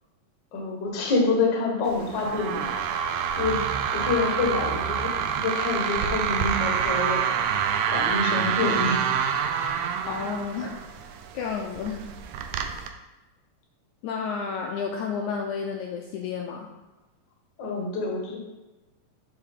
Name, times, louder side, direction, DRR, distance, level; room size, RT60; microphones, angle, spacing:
voice 1, 0.5-3.6 3.9-7.2 7.8-9.0 17.6-18.4, left 3 dB, 50° left, -1 dB, 1.4 m, -27 dB
sound 1, 1.9-12.9, right 7 dB, 80° right, 1.7 m, -27 dB
voice 2, 10.1-12.1 14.0-16.7, left 6 dB, 85° left, 1 dB, 1.7 m, -31 dB
8.2 x 4.5 x 3.5 m, 1.1 s
omnidirectional pair, 3.9 m